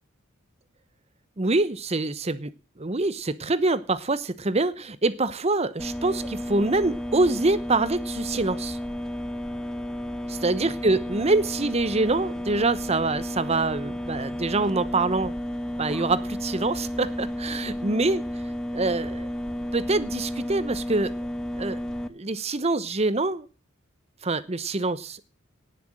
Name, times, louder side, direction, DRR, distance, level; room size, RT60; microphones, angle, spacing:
voice 1, 1.4-2.5 2.8-8.8 10.3-15.3 15.8-18.2 18.7-19.3 19.7-21.1 21.6-21.8 22.1-23.5 24.2-25.2, right 2 dB, 30° right, 16 dB, 0.9 m, -25 dB
sound 1, 5.8-22.1, equal, 5° left, 1.2 m, -32 dB
18.5 x 6.9 x 7.7 m, 0.36 s
head